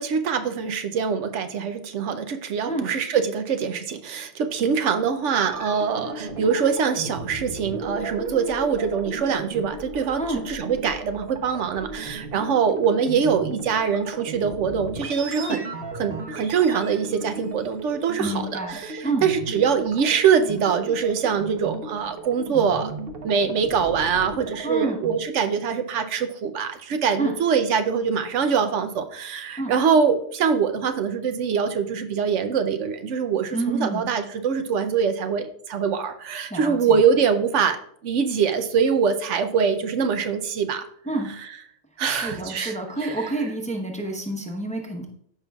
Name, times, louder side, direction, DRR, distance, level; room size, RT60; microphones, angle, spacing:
voice 1, 0.0-15.6 16.0-22.9 23.2-37.8 38.0-40.8 42.0-43.3, right 6 dB, 75° right, 8 dB, 1.0 m, -23 dB
sound 1, 5.3-25.1, right 3 dB, 55° right, 1.1 m, -35 dB
voice 2, 18.2-19.3 24.6-25.0 27.2-27.3 29.6-29.7 33.5-34.1 36.5-37.0 41.1-41.3 42.0-45.1, right 2 dB, 5° left, 2 dB, 0.8 m, -28 dB
14.0 x 5.3 x 2.3 m, 0.67 s
omnidirectional pair, 1.3 m